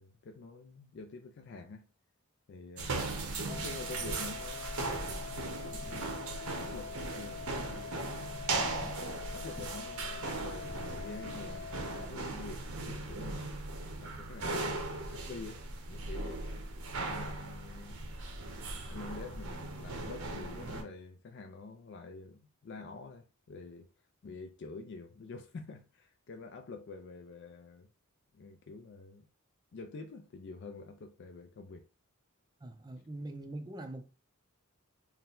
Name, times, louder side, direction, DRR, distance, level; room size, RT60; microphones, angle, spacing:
voice 1, 0.0-1.8 2.5-7.8 8.4-9.0 9.3-13.5 14.0-14.8 15.1-16.7 17.1-18.2 18.7-23.9 24.2-27.9 28.3-29.3 29.7-31.9, left 3 dB, 55° left, 0.4 m, -48 dB
sound 1, 2.8-20.8, right 3 dB, 80° right, 0.9 m, -38 dB
sound 2, 3.5-12.1, left 6 dB, 20° left, 1.0 m, -45 dB
voice 2, 32.6-34.1, right 2 dB, 20° right, 0.5 m, -43 dB
4.4 x 2.1 x 3.7 m
head